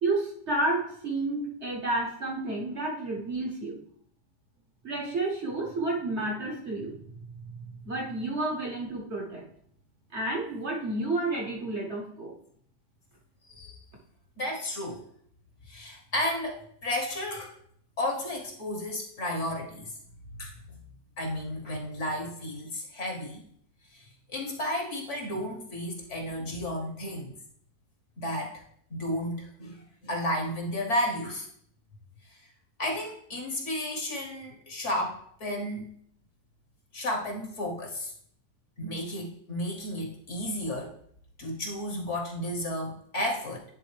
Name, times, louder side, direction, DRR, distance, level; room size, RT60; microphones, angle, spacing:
voice 1, 0.0-3.8 4.8-7.0 7.8-9.4 10.1-12.3, right 2 dB, 45° right, -1 dB, 1.2 m, -30 dB
voice 2, 13.4-13.8 14.4-15.0 15.7-17.5 18.0-19.9 20.4-20.8 21.2-23.4 23.9-27.3 28.2-28.5 28.9-31.5 32.3-32.4 32.8-35.9 36.9-38.1 38.8-40.9 41.4-43.6, left 1 dB, 50° left, 0 dB, 1.4 m, -33 dB
10.5 x 3.8 x 3.3 m, 0.64 s
omnidirectional pair, 1.8 m